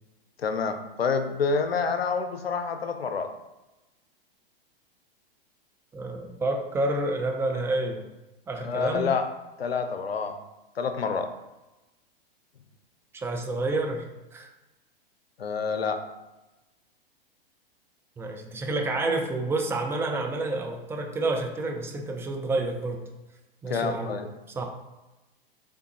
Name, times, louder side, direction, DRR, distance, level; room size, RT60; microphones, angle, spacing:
voice 1, 0.4-3.3 8.6-9.3 9.6-10.4 10.8-11.3 15.4-16.0 23.7-24.3, left 5 dB, 85° left, 8 dB, 0.5 m, -28 dB
voice 2, 5.9-8.1 8.5-9.1 13.1-14.1 14.3-14.5 18.2-23.0 23.6-24.2 24.5-24.6, right 2 dB, 10° right, 3 dB, 0.4 m, -29 dB
3.7 x 3.5 x 2.8 m, 1.0 s
hypercardioid pair, 105°, 29 cm